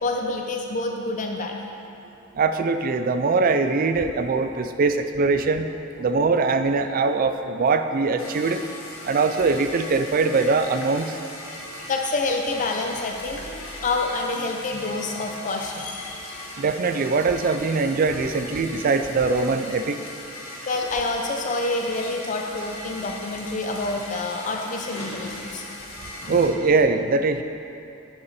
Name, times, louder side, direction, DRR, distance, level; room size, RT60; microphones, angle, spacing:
voice 1, 0.0-1.6 11.9-16.2 20.7-25.7 26.2-26.4, left 3 dB, 40° left, 2 dB, 0.5 m, -27 dB
voice 2, 2.4-5.7 6.0-8.6 9.0-11.1 16.6-20.0 26.3-27.4, right 4 dB, 45° right, 9 dB, 0.4 m, -22 dB
sound 1, 8.2-26.5, left 1 dB, 90° left, 1.4 m, -39 dB
8.8 x 6.7 x 4.2 m, 2.8 s
head